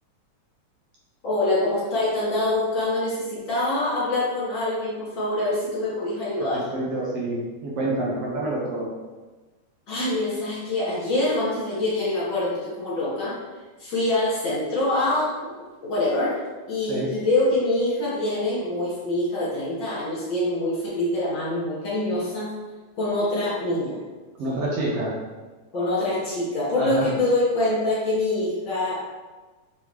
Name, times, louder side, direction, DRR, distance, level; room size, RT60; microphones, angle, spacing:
voice 1, 1.2-6.6 9.9-13.3 13.8-15.3 15.8-16.4 16.7-22.5 23.0-24.0 25.7-29.0, left 2 dB, 45° left, -8 dB, 2.6 m, -25 dB
voice 2, 6.7-8.9 16.9-17.1 24.4-25.1 26.7-27.1, right 1 dB, 60° right, -5 dB, 2.0 m, -27 dB
5.6 x 5.4 x 3.2 m, 1.3 s
omnidirectional pair, 3.3 m